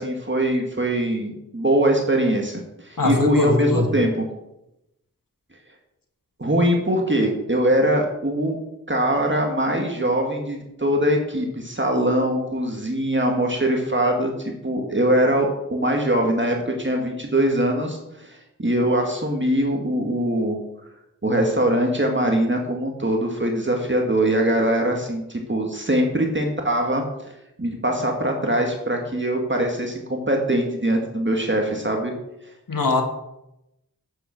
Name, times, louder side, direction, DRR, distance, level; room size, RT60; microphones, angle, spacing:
voice 1, 0.0-4.2 6.4-8.6 8.9-20.6 21.2-27.0 27.6-32.1, right 1 dB, 35° right, 1 dB, 1.9 m, -22 dB
voice 2, 3.0-3.9 32.7-33.0, left 3 dB, 80° left, 4 dB, 1.7 m, -21 dB
8.5 x 7.7 x 6.4 m, 0.87 s
wide cardioid pair, 55°, 33 cm